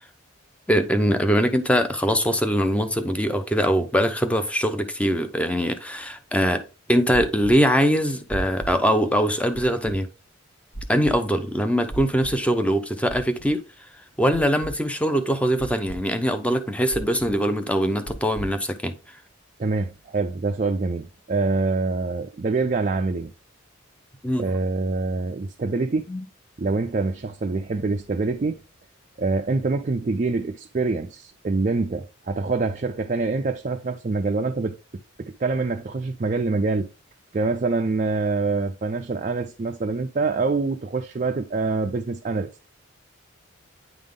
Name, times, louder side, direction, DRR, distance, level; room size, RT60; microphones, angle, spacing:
voice 1, 0.7-6.6 6.9-10.1 10.9-13.6 14.2-19.0 24.2-24.5 26.1-26.3, equal, 5° left, 0.7 m, -22 dB
sound 1, 7.1-7.5 8.3-8.7 9.5-9.9 10.7-11.1 11.9-12.3 13.1-13.5 14.3-14.7 15.6-16.0 16.9-17.3 18.1-18.5, right 2 dB, 70° left, 2.1 m, -34 dB
voice 2, 19.6-23.3 24.4-26.1 26.6-28.6 29.2-34.8 35.2-36.9 37.3-42.5, right 3 dB, 35° right, 0.4 m, -25 dB
9.5 x 3.6 x 3.7 m
head